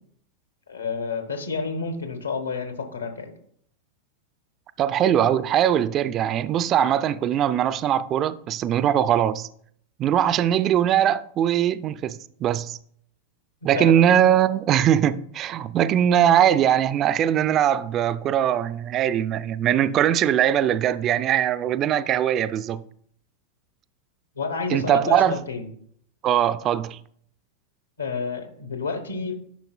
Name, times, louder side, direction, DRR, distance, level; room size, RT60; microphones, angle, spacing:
voice 1, 0.7-3.3 13.7-14.1 24.4-25.7 28.0-29.4, left 4 dB, 75° left, 1.2 m, -30 dB
voice 2, 4.8-9.5 10.0-12.8 13.6-22.8 24.7-25.4 26.2-27.0, right 10 dB, 30° right, 0.3 m, -21 dB
10.0 x 5.8 x 2.2 m
figure-of-eight pair, 90°, 0 cm